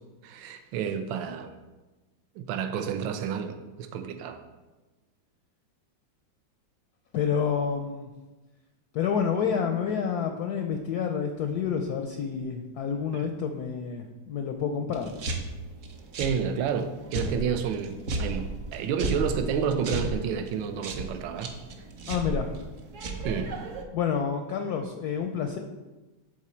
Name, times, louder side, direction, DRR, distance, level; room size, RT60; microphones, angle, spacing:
voice 1, 0.2-1.5 2.4-4.4 13.1-13.3 16.2-21.5 23.2-23.5, right 7 dB, 75° right, 8 dB, 1.4 m, -30 dB
voice 2, 7.1-8.1 8.9-15.1 22.1-22.5 23.9-25.6, left 7 dB, 75° left, 5 dB, 0.9 m, -29 dB
sound 1, 14.9-23.8, right 2 dB, 60° right, 0.8 m, -35 dB
11.0 x 3.8 x 4.4 m, 1.2 s
omnidirectional pair, 2.2 m